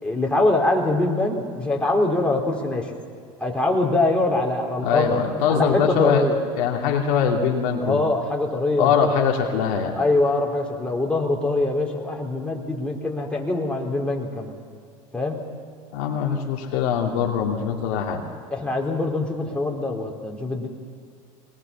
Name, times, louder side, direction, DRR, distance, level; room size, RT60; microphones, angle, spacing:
voice 1, 0.0-2.9 3.4-5.1 5.5-6.4 7.8-9.2 10.0-14.5 15.1-15.4 18.5-20.7, left 2 dB, 5° left, -1 dB, 4.3 m, -23 dB
voice 2, 4.8-6.3 6.6-8.0 8.8-10.0 15.9-18.3, left 7 dB, 70° left, 0 dB, 2.8 m, -22 dB
22.5 x 20.0 x 7.3 m, 2.2 s
hypercardioid pair, 90°, 18 cm